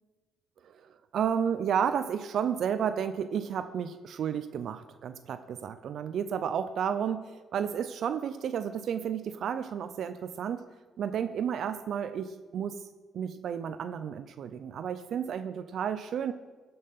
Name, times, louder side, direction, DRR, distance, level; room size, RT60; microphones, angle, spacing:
voice 1, 1.1-10.7 11.0-12.8 13.1-16.3, right 8 dB, 65° right, 11 dB, 0.5 m, -32 dB
14.5 x 5.5 x 5.6 m, 1.3 s
cardioid pair, 90°, 0 cm